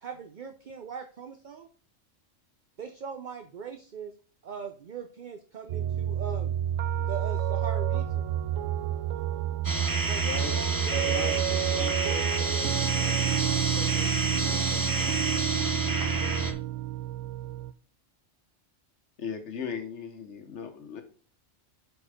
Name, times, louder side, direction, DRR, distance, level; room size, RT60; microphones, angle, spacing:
voice 1, 0.0-1.7 2.8-4.1 4.4-6.6 7.0-8.2 10.1-11.2, right 6 dB, 45° right, 6 dB, 0.7 m, -40 dB
sound 1, 5.7-17.7, right 12 dB, 90° right, 1.0 m, -30 dB
sound 2, 9.6-16.5, right 3 dB, 15° right, 0.9 m, -29 dB
voice 2, 10.2-10.6 10.9-15.8, left 2 dB, 40° left, 2 dB, 1.4 m, -41 dB
voice 3, 19.2-21.0, left 6 dB, 65° left, 6 dB, 1.5 m, -37 dB
8.3 x 4.6 x 5.0 m, 0.41 s
omnidirectional pair, 1.3 m